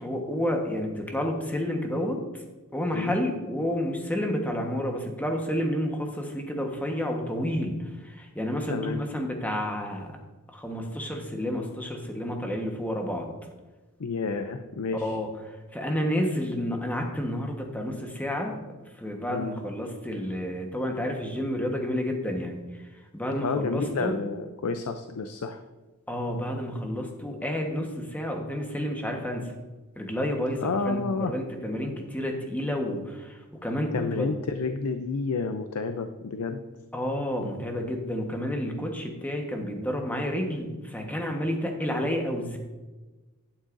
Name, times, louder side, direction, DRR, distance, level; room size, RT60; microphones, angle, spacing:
voice 1, 0.0-2.2 2.7-10.2 10.5-13.3 15.0-18.5 19.0-22.8 23.1-24.2 26.1-29.4 29.9-34.3 36.9-42.6, equal, 5° left, 2 dB, 1.2 m, -30 dB
voice 2, 8.7-9.0 14.0-15.2 19.3-19.5 23.4-25.6 30.6-31.3 33.9-36.6, left 4 dB, 90° left, 8 dB, 0.5 m, -30 dB
11.5 x 8.9 x 2.6 m, 1.2 s
head